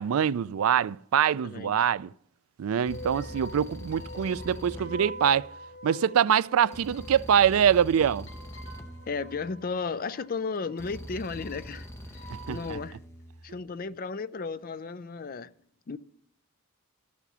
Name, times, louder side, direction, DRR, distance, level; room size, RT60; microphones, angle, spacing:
voice 1, 0.0-2.1 2.6-5.5 5.8-8.3 12.5-12.8, right 8 dB, 80° right, 0.4 m, -24 dB
voice 2, 1.1-1.9 3.2-3.3 9.1-11.9 12.1-13.0 13.4-15.5 15.9-16.0, left 4 dB, 45° left, 0.5 m, -34 dB
sound 1, 2.7-12.8, left 1 dB, 60° left, 3.3 m, -46 dB
sound 2, 2.9-6.0 6.7-10.0 10.8-13.6, equal, 10° left, 0.9 m, -44 dB
14.0 x 7.4 x 6.8 m
head